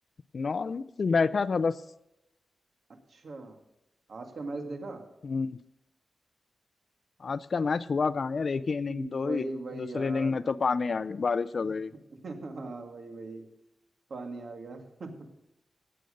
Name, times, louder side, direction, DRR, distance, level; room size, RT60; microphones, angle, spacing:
voice 1, 0.3-1.8 5.2-5.6 7.2-9.5 9.7-11.9, left 4 dB, 55° left, 14 dB, 0.4 m, -28 dB
voice 2, 3.1-3.6 4.1-5.0 8.8-10.4 11.6-11.7 12.1-13.5 14.1-15.1, right 3 dB, 65° right, 3 dB, 2.1 m, -39 dB
17.5 x 7.8 x 5.2 m, 0.88 s
wide cardioid pair, 120°, 0 cm